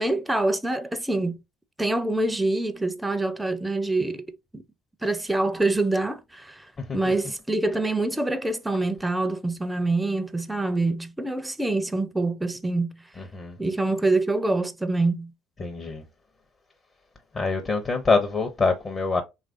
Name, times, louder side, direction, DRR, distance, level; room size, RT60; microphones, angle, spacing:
voice 1, 0.0-1.4 1.8-4.6 5.0-13.0 13.6-15.3, right 2 dB, 10° right, 0.4 m, -25 dB
voice 2, 15.6-16.0 17.3-19.2, left 4 dB, 35° left, 0.6 m, -24 dB
3.0 x 2.4 x 2.5 m
hypercardioid pair, 60°, 0 cm